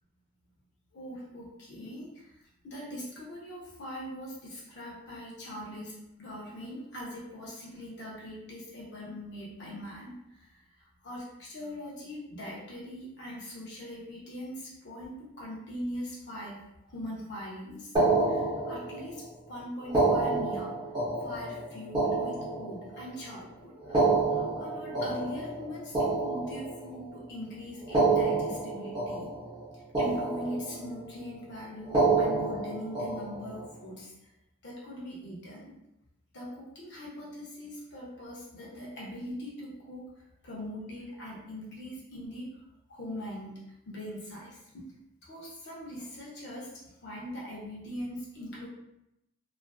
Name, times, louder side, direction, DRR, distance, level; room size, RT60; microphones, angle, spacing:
voice 1, 0.9-2.3 2.6-10.6 11.0-16.6 16.9-17.9 18.3-19.2 19.5-20.8 21.2-29.3 29.7-34.1 34.6-35.8 36.3-40.1 40.4-42.6 42.9-44.9 45.2-46.7 47.0-48.7, equal, 50° left, -4 dB, 0.6 m, -41 dB
sound 1, 18.0-19.2 19.8-23.1 23.8-27.1 27.8-29.7 29.9-31.0 31.8-33.6, right 3 dB, 20° right, 0.6 m, -28 dB
2.4 x 2.4 x 2.2 m, 0.85 s
head